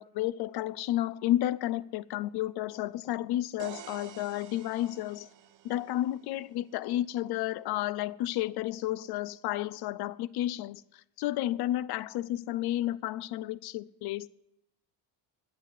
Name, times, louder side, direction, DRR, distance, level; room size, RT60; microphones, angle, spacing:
voice 1, 0.0-5.3 5.6-14.3, left 14 dB, 55° left, 0.6 m, -32 dB
sound 1, 3.6-7.4, right 10 dB, 40° right, 0.8 m, -50 dB
11.0 x 8.5 x 7.5 m
cardioid pair, 145°, 46 cm